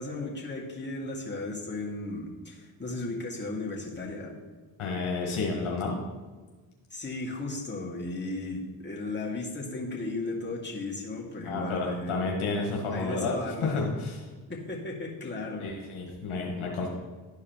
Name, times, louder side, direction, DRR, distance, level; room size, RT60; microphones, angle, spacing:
voice 1, 0.0-4.3 6.9-12.3 12.9-13.8 14.5-15.7, left 2 dB, 20° left, -3 dB, 2.0 m, -35 dB
voice 2, 4.8-6.0 11.4-14.2 15.6-16.9, left 3 dB, 75° left, -1 dB, 1.4 m, -31 dB
11.5 x 4.8 x 3.0 m, 1.3 s
supercardioid pair, 45°, 50 cm